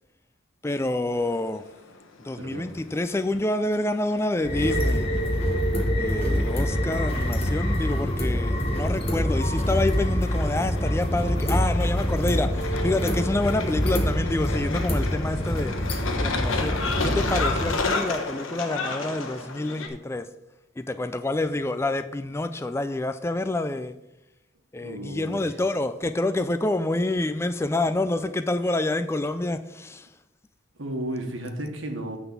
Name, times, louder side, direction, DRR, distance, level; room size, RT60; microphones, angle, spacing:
voice 1, 0.6-1.6 2.2-5.1 6.0-15.7 16.2-16.7 17.0-20.3 20.8-23.9 24.7-30.1, left 2 dB, 15° left, 0.3 m, -27 dB
sound 1, 1.1-19.9, left 3 dB, 75° left, 1.2 m, -34 dB
voice 2, 2.3-2.7 24.8-25.6 30.8-32.2, right 1 dB, 70° right, 1.3 m, -33 dB
sound 2, 4.4-17.8, equal, 30° left, 1.1 m, -25 dB
9.6 x 3.9 x 7.1 m
head